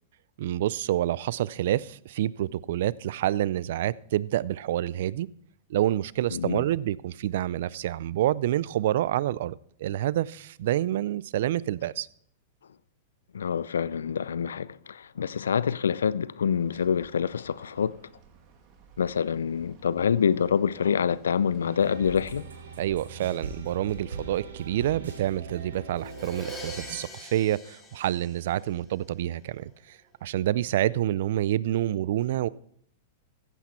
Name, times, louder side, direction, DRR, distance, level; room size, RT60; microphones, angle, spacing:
voice 1, 0.4-5.3 5.7-12.1 22.8-32.5, right 13 dB, 70° right, 0.4 m, -28 dB
voice 2, 6.3-6.6 13.3-18.0 19.0-22.5, left 7 dB, 90° left, 0.4 m, -26 dB
sound 1, 16.5-23.6, right 4 dB, 45° right, 2.2 m, -53 dB
sound 2, 21.6-26.9, right 4 dB, 85° right, 3.4 m, -41 dB
Crash cymbal, 26.0-28.9, right 1 dB, 20° left, 2.8 m, -42 dB
15.0 x 8.2 x 4.3 m
hypercardioid pair, 115°, 0 cm